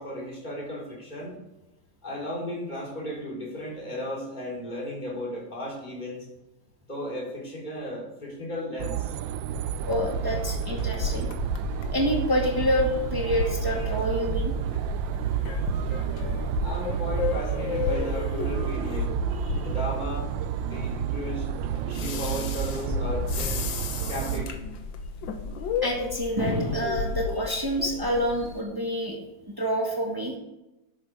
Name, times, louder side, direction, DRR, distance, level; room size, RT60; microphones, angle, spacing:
voice 1, 0.0-1.3 2.0-6.3 6.9-9.1 16.6-19.1 19.6-21.5 21.8-23.6 24.1-24.7, equal, 20° left, -4 dB, 4.1 m, -35 dB
sound 1, 8.8-24.5, right 11 dB, 80° right, 1.3 m, -31 dB
sound 2, 9.5-28.6, left 4 dB, 75° left, 1.8 m, -33 dB
voice 2, 9.9-11.3 11.9-14.5 19.5-19.6 25.8-29.2 29.5-30.3, equal, 10° right, 0 dB, 1.8 m, -27 dB
12.0 x 9.7 x 4.9 m, 0.96 s
omnidirectional pair, 2.1 m